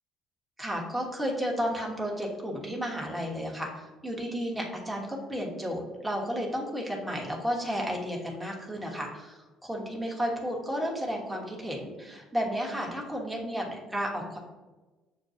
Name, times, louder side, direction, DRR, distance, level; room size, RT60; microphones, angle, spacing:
voice 1, 0.6-14.4, equal, 5° right, -2 dB, 1.1 m, -32 dB
6.7 x 2.3 x 2.6 m, 1.2 s
supercardioid pair, 85°, 0 cm